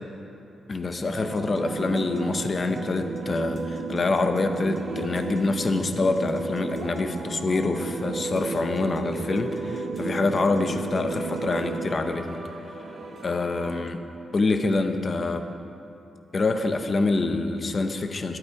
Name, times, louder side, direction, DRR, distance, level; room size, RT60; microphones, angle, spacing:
voice 1, 0.7-12.4 13.2-14.0 14.3-15.5 16.3-18.4, left 3 dB, 30° left, 6 dB, 0.8 m, -26 dB
sound 1, 1.2-13.8, right 3 dB, 45° right, 1.3 m, -33 dB
21.5 x 8.0 x 4.8 m, 2.7 s
wide cardioid pair, 160°, 0 cm